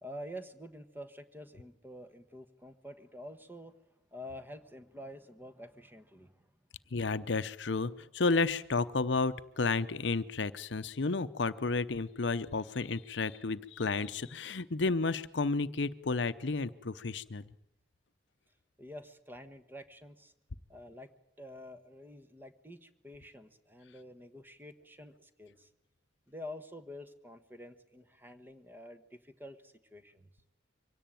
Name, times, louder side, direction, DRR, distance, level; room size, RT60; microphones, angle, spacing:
voice 1, 0.0-3.7 4.1-6.5 18.8-20.3 20.7-21.1 21.4-25.7 26.3-30.3, equal, 10° right, 9 dB, 1.3 m, -48 dB
voice 2, 6.9-17.4, left 3 dB, 65° left, 14 dB, 0.8 m, -32 dB
24.0 x 17.5 x 9.1 m, 0.91 s
head